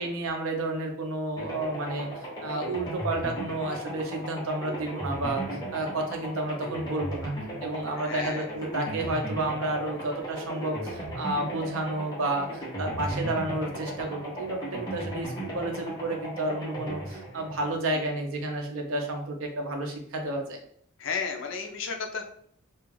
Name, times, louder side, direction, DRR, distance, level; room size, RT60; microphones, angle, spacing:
voice 1, 0.0-7.3 7.6-20.6, right 2 dB, 70° right, 3 dB, 0.5 m, -31 dB
sound 1, 1.4-18.3, right 1 dB, 15° left, 0.6 m, -36 dB
voice 2, 8.0-8.5 17.9-18.0 21.0-22.2, left 5 dB, 60° left, 3 dB, 0.4 m, -33 dB
2.3 x 2.2 x 3.1 m, 0.65 s
head